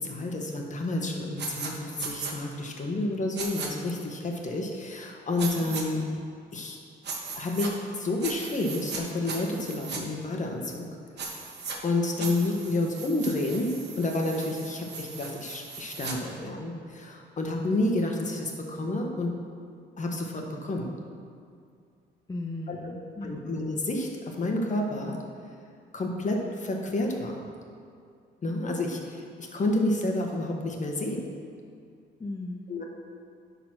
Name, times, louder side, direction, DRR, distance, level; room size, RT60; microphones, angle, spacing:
voice 1, 0.0-6.1 6.5-6.8 7.3-10.8 11.2-11.3 11.8-13.7 14.0-19.3 20.0-20.9 22.7-22.8 23.2-25.2 25.9-27.4 28.4-31.2 32.7-32.8, left 2 dB, 40° left, 1 dB, 1.4 m, -30 dB
sound 1, 1.4-1.7 2.0-2.3 3.3-3.7 5.4-5.8 7.0-7.7 8.2-9.0 9.3-10.0 11.2-11.8 12.2-16.1, right 4 dB, 60° right, 1.4 m, -37 dB
voice 2, 7.1-7.4 22.3-23.4 32.2-32.7, left 2 dB, 15° left, 1 dB, 0.6 m, -37 dB
11.0 x 4.1 x 6.1 m, 2.3 s
cardioid pair, 90°, 20 cm